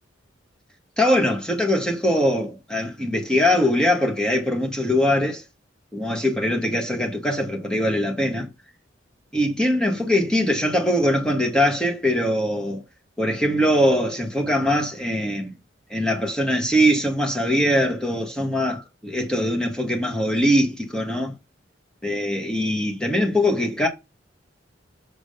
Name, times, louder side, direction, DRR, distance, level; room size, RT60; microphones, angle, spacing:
voice 1, 1.0-5.4 5.9-8.5 9.3-12.8 13.2-15.5 15.9-21.3 22.0-23.9, equal, 5° left, 1.6 m, -22 dB
6.7 x 3.8 x 4.9 m
head